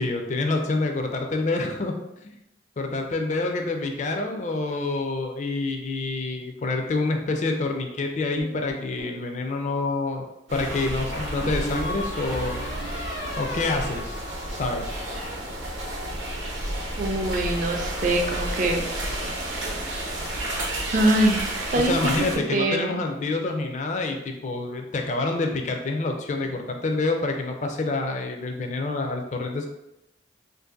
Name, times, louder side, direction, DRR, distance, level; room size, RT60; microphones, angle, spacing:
voice 1, 0.0-2.0 2.2-2.3 2.8-10.2 10.5-12.6 13.4-14.2 14.5-14.8 21.7-29.7, left 3 dB, 40° left, 4 dB, 0.4 m, -27 dB
sound 1, 8.4-9.2 11.1-14.6 14.9-15.4, equal, 85° left, 1.2 m, -35 dB
sound 2, 10.5-22.4, right 1 dB, 75° right, 0.7 m, -31 dB
voice 2, 17.0-18.8 19.5-20.0 20.9-22.1 22.5-23.0, right 1 dB, 45° right, 3 dB, 0.4 m, -24 dB
2.6 x 2.5 x 3.7 m, 0.87 s
head